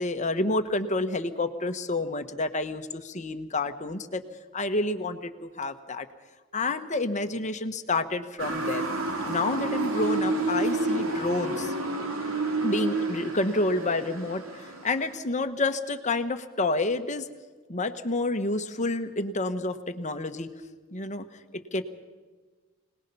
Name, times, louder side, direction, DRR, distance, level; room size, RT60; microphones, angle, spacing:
voice 1, 0.0-4.2 4.5-6.0 6.5-8.8 9.2-11.7 12.6-17.3 17.7-20.5 20.9-21.2 21.5-21.8, left 2 dB, 35° left, 8 dB, 1.2 m, -29 dB
Motor vehicle (road) / Siren, 8.4-15.1, right 2 dB, 85° right, 2.6 m, -29 dB
25.5 x 19.5 x 5.5 m, 1.4 s
head